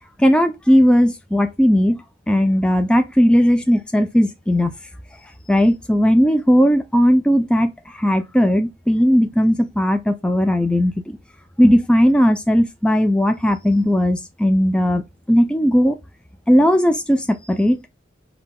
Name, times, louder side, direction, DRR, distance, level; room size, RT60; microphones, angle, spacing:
voice 1, 0.2-2.0 2.3-4.7 5.5-11.2 11.6-16.0 16.5-17.8, equal, 5° left, 0.3 m, -17 dB
5.3 x 2.3 x 3.7 m
head